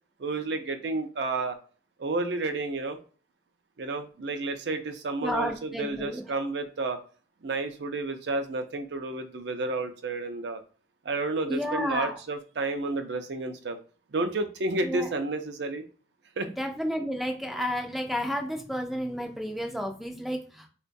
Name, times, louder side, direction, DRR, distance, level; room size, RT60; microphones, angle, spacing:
voice 1, 0.2-1.6 2.0-3.0 3.8-7.0 7.4-10.6 11.0-13.8 14.1-15.8 16.4-16.5, right 2 dB, 65° right, 7 dB, 0.5 m, -31 dB
voice 2, 5.2-6.2 11.5-12.2 14.8-15.1 16.6-20.7, equal, ahead, 3 dB, 0.3 m, -31 dB
3.7 x 2.2 x 2.6 m, 0.39 s
head